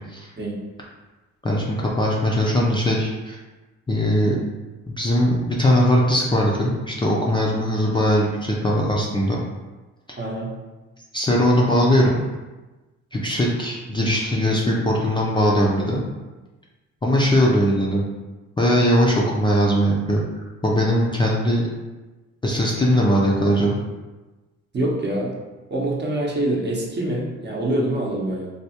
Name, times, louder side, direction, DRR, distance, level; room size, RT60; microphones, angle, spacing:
voice 1, 1.4-3.4 3.9-4.4 4.9-9.4 10.1-10.2 11.1-12.2 13.1-16.0 17.0-18.1 18.6-20.2 20.6-21.7 22.4-23.8, equal, 15° left, -4 dB, 0.5 m, -20 dB
voice 2, 10.2-10.5 24.7-25.3 25.7-28.5, right 1 dB, 35° right, -2 dB, 0.8 m, -25 dB
3.3 x 2.3 x 2.8 m, 1.2 s
cardioid pair, 90°, 30 cm